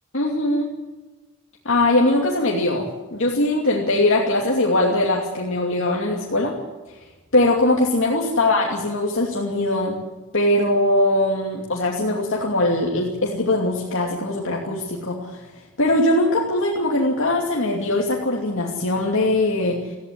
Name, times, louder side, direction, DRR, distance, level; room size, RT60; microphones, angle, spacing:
voice 1, 0.1-0.7 1.6-6.6 7.3-10.0 10.3-15.4 15.8-19.9, left 1 dB, 60° left, -2 dB, 2.7 m, -21 dB
19.0 x 15.0 x 9.9 m, 1.2 s
head